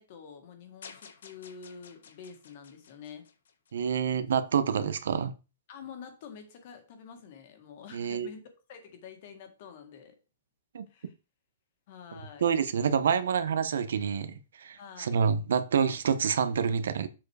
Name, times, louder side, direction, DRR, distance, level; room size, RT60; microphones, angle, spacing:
voice 1, 0.0-3.3 5.7-8.4 8.7-10.2 10.9-11.1 11.9-12.5 14.8-15.2, left 6 dB, 35° left, 1.8 m, -47 dB
sound 1, 0.8-4.1, left 6 dB, 80° left, 1.5 m, -52 dB
voice 2, 3.7-5.3 7.9-8.3 10.7-10.9 12.4-17.1, right 7 dB, 75° right, 0.9 m, -27 dB
7.5 x 4.7 x 4.9 m
hypercardioid pair, 175°, 0 cm